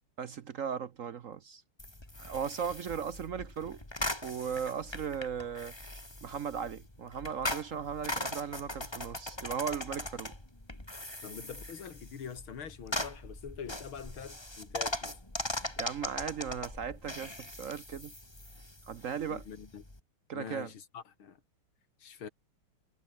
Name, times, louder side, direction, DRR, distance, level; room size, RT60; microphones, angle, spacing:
voice 1, 0.2-1.6 2.2-3.8 4.2-5.7 6.2-10.3 15.8-18.1 18.9-19.4 20.3-20.7, right 7 dB, 65° right, 0.8 m, -37 dB
sound 1, 1.8-20.0, left 1 dB, 10° left, 3.2 m, -40 dB
voice 2, 11.2-15.2 19.3-19.8 20.3-21.4 22.0-22.3, left 7 dB, 75° left, 2.9 m, -44 dB
omnidirectional pair, 2.3 m